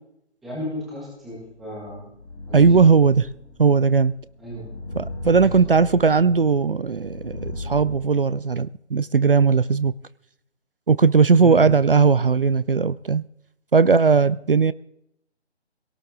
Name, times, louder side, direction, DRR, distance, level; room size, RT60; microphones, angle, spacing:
voice 1, 0.4-2.0 2.5-2.9 4.4-4.6 5.2-5.7 11.4-11.7, right 1 dB, ahead, -6 dB, 0.7 m, -34 dB
sound 1, 1.5-8.0, left 1 dB, 15° left, 1.8 m, -37 dB
voice 2, 2.5-3.3 3.6-4.2 4.9-9.9 10.9-13.2 13.7-14.7, right 5 dB, 55° right, 17 dB, 0.5 m, -18 dB
20.5 x 17.5 x 3.7 m, 0.77 s
figure-of-eight pair, 150°, 34 cm